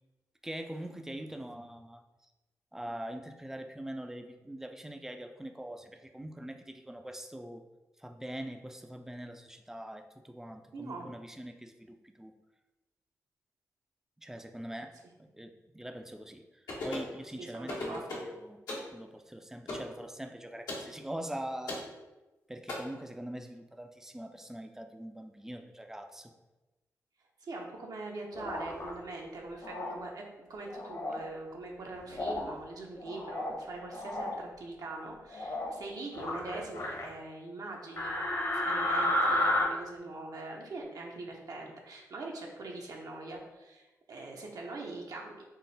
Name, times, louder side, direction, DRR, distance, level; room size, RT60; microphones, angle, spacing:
voice 1, 0.4-2.0 2.7-7.7 8.0-12.3 14.2-16.5 16.8-18.6 18.9-21.9 22.5-26.3, right 1 dB, 5° right, 6 dB, 0.4 m, -43 dB
voice 2, 10.7-11.1 17.4-18.2 27.4-38.1 38.6-45.4, right 2 dB, 65° right, 0 dB, 0.7 m, -42 dB
sound 1, 16.7-17.1 17.7-18.3 18.7-18.9 19.7-19.9 20.7-20.9 21.7-21.9 22.7-22.8, left 2 dB, 85° left, 1.2 m, -37 dB
sound 2, 28.3-28.9 29.6-29.9 30.7-31.2 32.1-32.5 33.0-33.6 33.9-34.3 35.3-35.7 36.1-37.1 38.0-39.6, left 1 dB, 50° left, 0.9 m, -32 dB
3.8 x 2.0 x 3.9 m, 1.1 s
cardioid pair, 55°, 7 cm